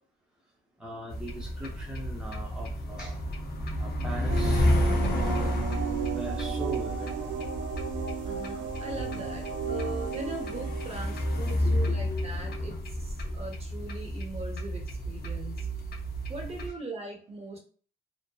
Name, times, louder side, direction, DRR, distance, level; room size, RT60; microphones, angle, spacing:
voice 1, 0.8-3.2 3.8-4.6 6.1-7.1 11.6-12.0, right 1 dB, 5° right, -2 dB, 0.8 m, -40 dB
sound 1, 1.1-16.7, left 1 dB, 50° left, 0.7 m, -31 dB
sound 2, 4.3-12.6, right 6 dB, 75° right, 0.4 m, -35 dB
voice 2, 8.2-15.7 16.3-17.6, right 3 dB, 30° right, 0 dB, 0.9 m, -40 dB
2.8 x 2.1 x 2.3 m, 0.42 s
cardioid pair, 90°, 20 cm